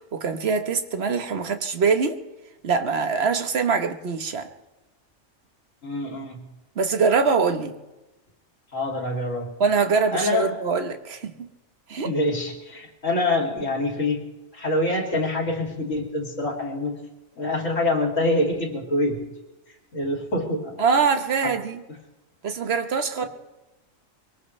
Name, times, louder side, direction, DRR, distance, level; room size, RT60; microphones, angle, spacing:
voice 1, 0.1-2.2 2.6-4.5 6.8-7.7 9.6-11.5 11.9-12.1 20.8-21.8 22.4-23.2, right 5 dB, 50° right, 7 dB, 1.3 m, -23 dB
voice 2, 5.8-6.4 8.7-9.5 10.1-10.5 12.0-14.2 14.5-16.9 17.4-19.2 19.9-20.8 21.4-21.5, left 1 dB, 65° left, 1 dB, 3.1 m, -25 dB
23.5 x 18.5 x 3.2 m, 1.1 s
omnidirectional pair, 1.4 m